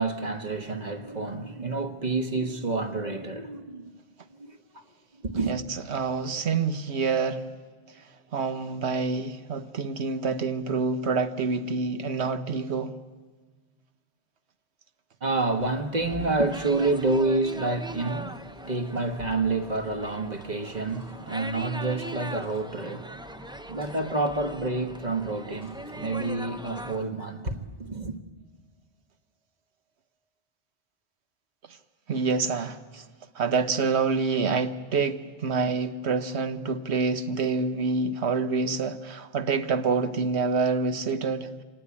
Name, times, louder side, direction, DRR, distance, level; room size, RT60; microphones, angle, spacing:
voice 1, 0.0-3.9 4.4-4.5 5.2-5.6 15.2-28.2, right 3 dB, 40° right, 1.5 m, -28 dB
voice 2, 5.5-7.5 8.3-12.9 32.1-33.0 33.3-41.5, right 4 dB, 90° right, 1.3 m, -27 dB
sound 1, 16.0-27.0, right 1 dB, 5° right, 0.4 m, -40 dB
sound 2, 20.9-21.4 21.7-21.8 22.3-22.8 23.8-24.2 25.6-26.2 26.8-27.5, right 1 dB, 60° right, 4.8 m, -56 dB
25.5 x 19.0 x 8.5 m
omnidirectional pair, 1.1 m